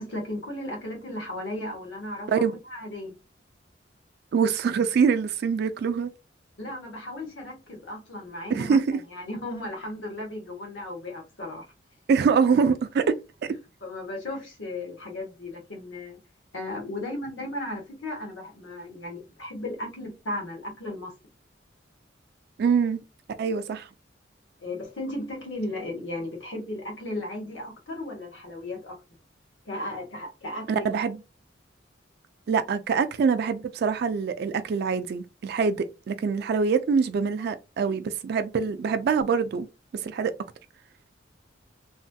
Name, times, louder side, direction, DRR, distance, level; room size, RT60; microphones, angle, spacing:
voice 1, 0.0-2.3 2.7-3.1 6.6-8.8 9.1-11.7 13.8-16.2 16.5-21.1 24.6-29.0 29.6-30.9, left 1 dB, 85° left, 1.2 m, -35 dB
voice 2, 4.3-6.1 8.5-9.0 12.1-13.1 22.6-23.0 23.4-23.9 30.7-31.2 32.5-39.7 39.9-40.3, right 5 dB, 55° right, 0.3 m, -24 dB
3.1 x 2.2 x 2.6 m
head